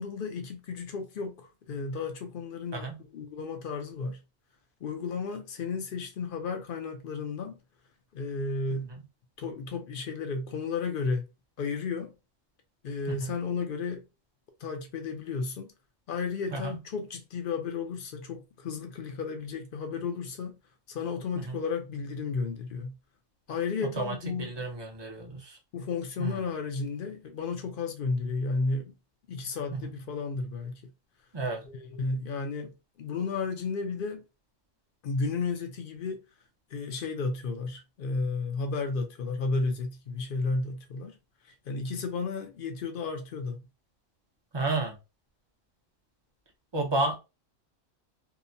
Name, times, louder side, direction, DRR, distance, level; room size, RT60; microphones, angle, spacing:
voice 1, 0.0-4.2 4.8-7.6 8.1-8.9 9.4-11.2 11.6-12.2 12.8-14.1 14.6-15.7 16.1-20.6 20.9-23.0 23.5-24.7 25.7-29.0 29.3-30.7 31.6-34.3 35.0-36.2 36.7-41.2 41.4-43.7, left 4 dB, 60° left, 0.6 m, -33 dB
voice 2, 24.0-25.6 26.2-26.3 29.7-29.8 31.3-31.6 44.5-45.0 46.7-47.2, right 2 dB, 35° right, 0.4 m, -31 dB
2.8 x 2.1 x 2.6 m
omnidirectional pair, 1.3 m